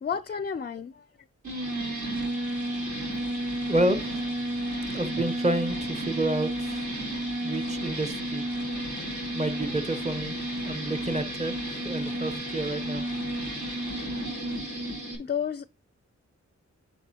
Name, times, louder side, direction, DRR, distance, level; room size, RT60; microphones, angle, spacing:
voice 1, 0.0-0.9 15.2-15.6, left 7 dB, 35° left, 0.4 m, -31 dB
sound 1, 1.4-15.1, right 1 dB, 85° right, 4.2 m, -32 dB
voice 2, 3.7-4.4 4.9-6.8 7.4-8.4 9.3-10.4 10.6-13.0, right 1 dB, 25° right, 0.9 m, -29 dB
10.0 x 5.1 x 2.9 m
wide cardioid pair, 90°, 29 cm